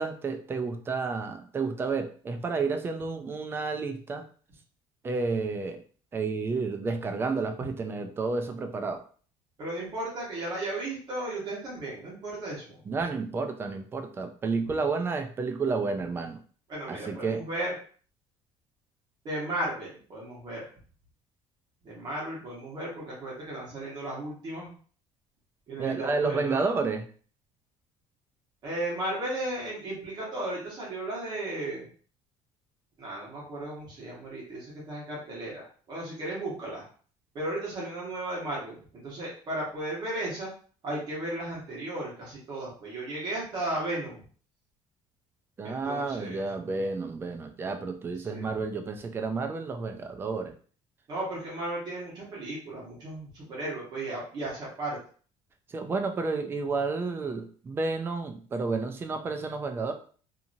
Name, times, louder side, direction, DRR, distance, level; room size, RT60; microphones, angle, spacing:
voice 1, 0.0-4.2 5.0-5.8 6.1-9.0 12.9-16.4 16.9-17.4 25.8-27.1 45.6-50.5 55.7-59.9, right 4 dB, 20° right, 6 dB, 0.4 m, -31 dB
voice 2, 9.6-12.8 16.7-17.7 19.2-20.6 21.8-24.7 25.7-26.6 28.6-31.8 33.0-36.8 37.3-40.5 40.8-44.2 45.6-46.4 48.2-48.5 51.1-55.0, right 1 dB, 40° right, -5 dB, 1.2 m, -35 dB
2.8 x 2.7 x 2.6 m, 0.43 s
cardioid pair, 150°, 11 cm